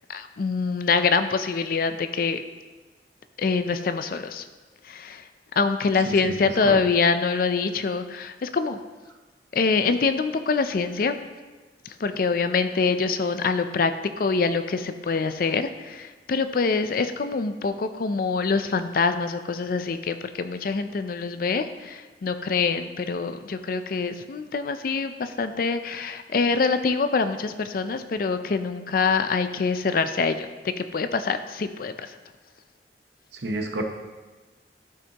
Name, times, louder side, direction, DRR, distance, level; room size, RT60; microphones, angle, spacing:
voice 1, 0.1-2.4 3.4-4.5 4.8-5.3 5.6-8.8 9.5-11.1 11.9-13.9 14.2-32.2, left 4 dB, 50° left, 9 dB, 0.4 m, -25 dB
voice 2, 33.4-33.8, right 1 dB, 70° right, 2 dB, 0.9 m, -29 dB
12.0 x 5.2 x 2.9 m, 1.3 s
head